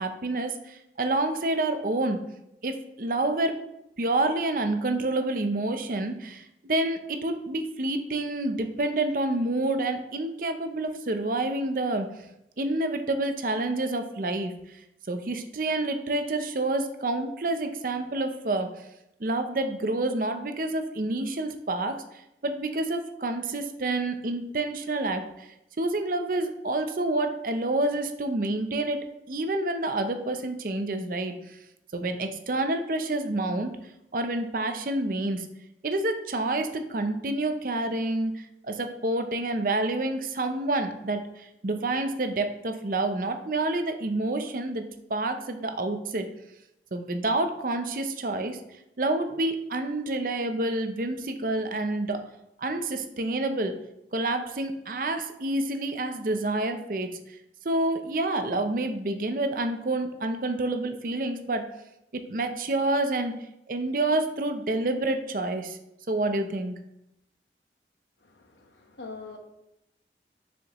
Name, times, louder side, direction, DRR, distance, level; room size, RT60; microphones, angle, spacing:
voice 1, 0.0-2.2 2.6-3.6 4.0-12.1 12.6-14.5 15.1-18.7 19.2-22.0 22.4-25.5 25.8-31.3 31.9-33.7 34.1-35.5 35.8-38.3 38.6-44.8 45.1-46.3 46.9-48.6 49.0-52.2 52.6-53.7 54.1-57.1 57.6-61.7 62.3-63.4 63.7-65.8 66.1-66.8, right 2 dB, 50° right, 7 dB, 0.6 m, -28 dB
voice 2, 68.3-69.4, left 4 dB, 90° left, 3 dB, 1.2 m, -43 dB
6.8 x 6.3 x 3.0 m, 0.84 s
head